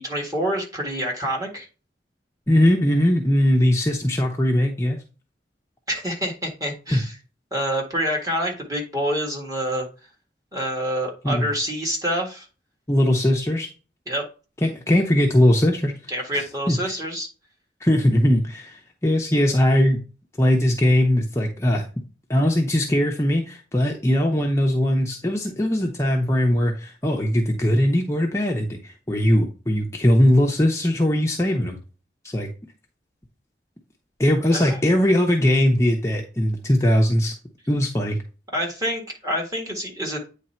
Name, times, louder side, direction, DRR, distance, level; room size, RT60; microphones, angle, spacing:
voice 1, 0.0-1.7 5.9-7.1 7.5-9.9 10.5-12.5 14.1-14.2 16.1-17.3 34.5-34.8 38.5-40.3, equal, 20° right, -1 dB, 1.8 m, -27 dB
voice 2, 2.5-5.0 6.9-7.0 11.2-11.5 12.9-13.7 14.6-15.9 16.3-16.8 17.8-20.0 20.4-21.8 22.3-31.8 32.2-32.5 34.2-37.3 37.7-38.2, left 1 dB, 15° left, 0 dB, 0.7 m, -20 dB
9.0 x 3.3 x 4.4 m, 0.34 s
head